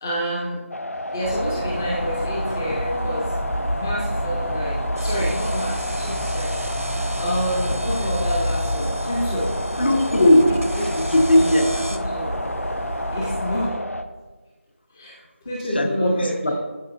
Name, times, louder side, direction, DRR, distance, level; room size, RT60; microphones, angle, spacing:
voice 1, 0.0-0.6 1.1-3.3 3.7-6.5 7.2-9.5 10.7-10.9 11.9-12.4 13.1-13.7 14.9-15.2 15.4-16.5, equal, 15° left, -5 dB, 0.7 m, -28 dB
sound 1, 0.7-14.0, left 1 dB, 90° left, 0.7 m, -31 dB
sound 2, 1.2-13.7, equal, 70° left, 2.1 m, -28 dB
sound 3, 5.0-12.0, right 1 dB, 85° right, 1.0 m, -38 dB
voice 2, 9.8-10.6 10.9-11.9 15.7-16.5, left 1 dB, 45° left, 5 dB, 1.0 m, -18 dB
14.0 x 4.8 x 2.5 m, 1.2 s
figure-of-eight pair, 165°, 8 cm